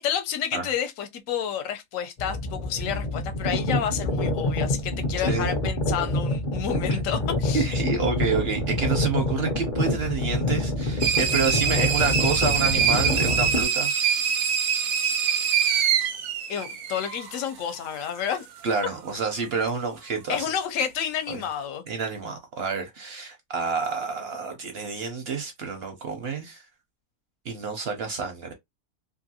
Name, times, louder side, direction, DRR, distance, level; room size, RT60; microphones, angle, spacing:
voice 1, 0.0-7.7 16.5-18.5 20.3-21.9, left 8 dB, 70° left, 1.0 m, -30 dB
sound 1, 2.2-13.6, left 1 dB, 50° left, 0.6 m, -27 dB
voice 2, 7.5-13.9 18.6-20.5 21.3-21.4 21.9-26.6 27.5-28.5, right 5 dB, 60° right, 0.7 m, -28 dB
sound 2, 11.0-17.4, right 7 dB, 85° right, 1.1 m, -24 dB
2.7 x 2.5 x 2.7 m
omnidirectional pair, 1.6 m